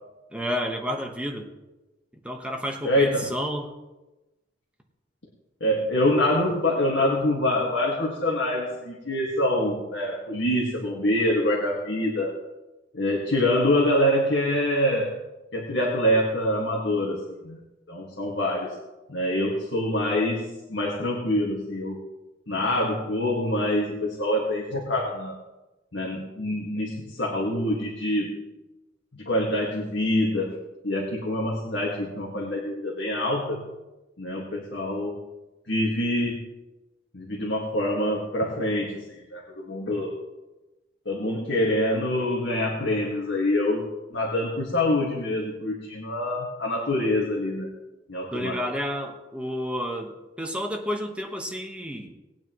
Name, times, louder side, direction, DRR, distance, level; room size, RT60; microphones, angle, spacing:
voice 1, 0.3-1.5 2.2-3.8 48.3-52.1, equal, 5° right, 2 dB, 1.2 m, -30 dB
voice 2, 2.8-3.3 5.6-12.3 12.9-15.1 15.5-17.6 17.9-18.8 19.1-22.0 22.5-25.4 25.9-28.4 29.1-30.6 30.8-33.6 34.2-35.2 35.7-36.5 37.1-40.2 41.1-47.7 48.1-48.6, left 1 dB, 70° left, -3 dB, 1.9 m, -25 dB
19.5 x 9.1 x 3.1 m, 1.1 s
head